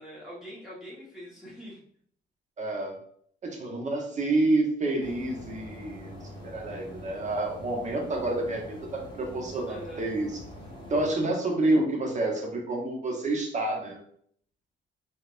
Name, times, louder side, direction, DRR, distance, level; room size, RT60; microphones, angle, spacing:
voice 1, 0.0-1.8 9.7-10.1, equal, 5° right, -7 dB, 1.3 m, -43 dB
voice 2, 2.6-2.9 3.4-6.1 6.4-10.3 10.9-14.0, right 2 dB, 35° right, 0 dB, 1.0 m, -28 dB
sound 1, 5.0-11.1, left 1 dB, 25° left, 1.2 m, -44 dB
3.8 x 2.4 x 2.5 m, 0.63 s
cardioid pair, 90°, 20 cm